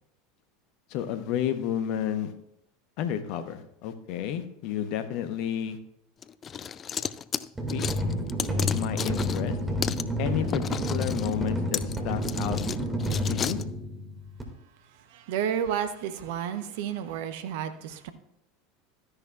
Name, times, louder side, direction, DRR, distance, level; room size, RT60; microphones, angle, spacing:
voice 1, 0.9-2.3 3.0-5.8 7.7-7.8 8.7-9.6 10.2-12.6 13.3-13.6, left 10 dB, 55° left, 0.9 m, -31 dB
sound 1, 6.2-9.5 9.8-10.0 10.5-13.6, left 7 dB, 30° left, 0.3 m, -33 dB
sound 2, 7.6-14.4, equal, 15° right, 2.0 m, -30 dB
voice 2, 15.1-18.1, right 9 dB, 60° right, 0.8 m, -31 dB
13.0 x 10.0 x 2.4 m
figure-of-eight pair, 75°, 0 cm